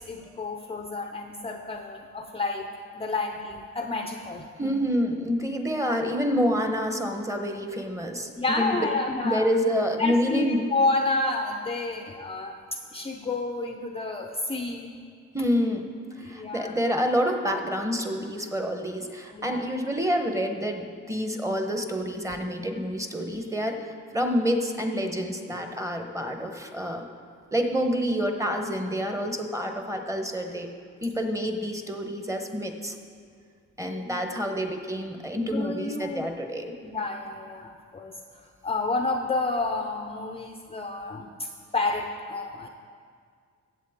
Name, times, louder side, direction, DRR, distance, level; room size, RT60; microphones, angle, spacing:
voice 1, 0.0-2.7 2.9-4.7 5.8-5.9 8.4-9.5 10.0-14.9 16.2-16.8 19.3-19.7 33.8-34.2 35.4-36.3 36.8-42.7, left 3 dB, 20° left, 3 dB, 0.6 m, -30 dB
voice 2, 4.6-8.9 9.2-10.7 15.3-15.9 16.2-27.0 27.5-30.7 31.0-32.9 33.8-36.7, equal, 10° right, 5 dB, 1.0 m, -28 dB
16.0 x 7.6 x 3.6 m, 2.1 s
cardioid pair, 90°, 30 cm